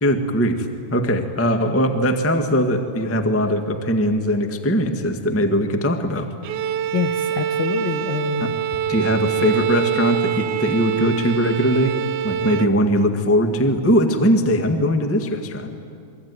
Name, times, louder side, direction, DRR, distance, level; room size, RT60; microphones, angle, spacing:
voice 1, 0.0-6.3 8.4-8.5 8.9-11.9 12.2-15.7, equal, 10° left, 5 dB, 0.6 m, -20 dB
Bowed string instrument, 6.4-12.8, right 9 dB, 75° right, 2.3 m, -25 dB
voice 2, 6.9-8.6, left 7 dB, 70° left, 7 dB, 1.1 m, -26 dB
27.5 x 22.0 x 9.6 m, 2.3 s
omnidirectional pair, 3.6 m